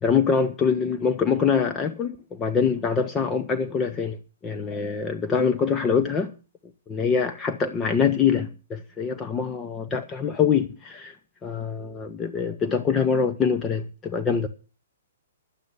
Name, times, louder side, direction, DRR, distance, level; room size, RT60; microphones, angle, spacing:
voice 1, 0.0-6.3 6.9-11.1 11.4-14.5, left 6 dB, 20° left, 1.0 m, -24 dB
12.0 x 8.4 x 7.0 m
figure-of-eight pair, 120°, 0 cm